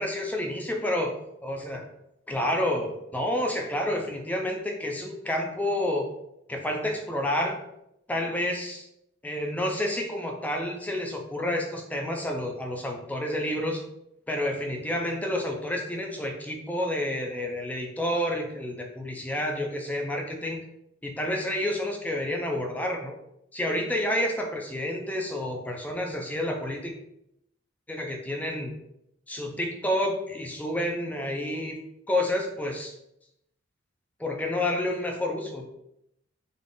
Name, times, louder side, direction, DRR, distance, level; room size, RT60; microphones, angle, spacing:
voice 1, 0.0-1.9 2.3-6.1 6.5-7.6 8.1-8.9 9.2-13.8 14.3-20.6 21.0-23.2 23.5-26.9 27.9-28.7 29.3-31.8 32.1-33.0 34.2-35.6, left 1 dB, 10° left, 2 dB, 0.4 m, -29 dB
3.8 x 2.4 x 3.7 m, 0.81 s
head